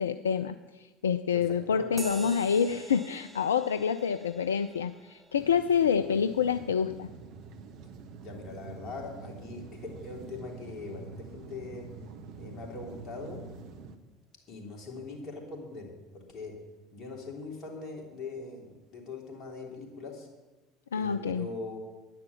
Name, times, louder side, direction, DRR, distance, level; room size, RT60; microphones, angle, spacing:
voice 1, 0.0-7.1 20.9-21.5, left 7 dB, 75° left, 12 dB, 0.4 m, -27 dB
voice 2, 1.3-2.3 8.2-11.9 12.4-13.4 14.5-16.6 16.9-20.3 21.0-21.8, left 3 dB, 45° left, 0 dB, 3.4 m, -41 dB
sound 1, 2.0-9.9, right 2 dB, 10° right, 1.0 m, -49 dB
sound 2, 5.4-14.0, right 4 dB, 50° right, 1.1 m, -46 dB
10.5 x 10.0 x 7.1 m, 1.1 s
figure-of-eight pair, 65°, 0 cm